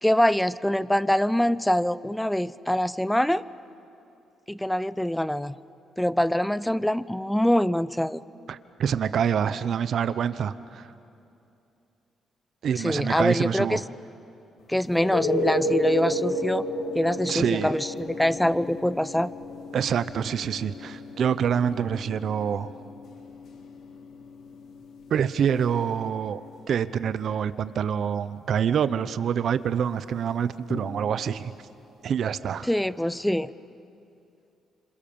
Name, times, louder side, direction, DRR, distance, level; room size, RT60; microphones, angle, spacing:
voice 1, 0.0-3.4 4.5-5.5 6.0-8.2 12.8-13.8 14.7-16.7 16.9-19.3 32.6-33.5, left 1 dB, 5° left, 17 dB, 0.6 m, -24 dB
voice 2, 8.5-10.9 12.6-13.8 17.3-17.7 19.7-22.7 25.1-26.4 26.7-31.5 32.0-32.7, right 8 dB, 60° right, 14 dB, 0.9 m, -26 dB
sound 1, 14.9-26.4 30.7-30.8, left 1 dB, 70° left, 2.5 m, -32 dB
27.0 x 27.0 x 7.1 m, 2.7 s
cardioid pair, 90°, 0 cm